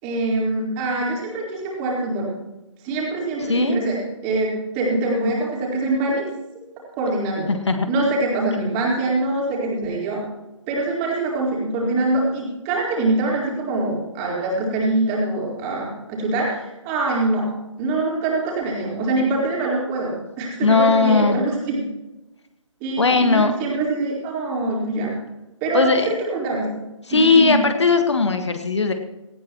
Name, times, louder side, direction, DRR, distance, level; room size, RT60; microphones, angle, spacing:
voice 1, 0.0-2.3 2.8-4.0 4.2-6.3 7.0-7.5 7.9-10.2 10.7-17.5 17.8-21.8 22.8-25.1 25.6-25.9 26.2-26.7 27.1-27.5, right 2 dB, 20° right, -3 dB, 4.2 m, -24 dB
voice 2, 7.5-7.9 20.6-21.4 23.0-23.5 25.7-26.1 27.1-28.9, left 4 dB, 60° left, 7 dB, 1.6 m, -18 dB
18.5 x 14.0 x 3.0 m, 1.0 s
figure-of-eight pair, 140°, 17 cm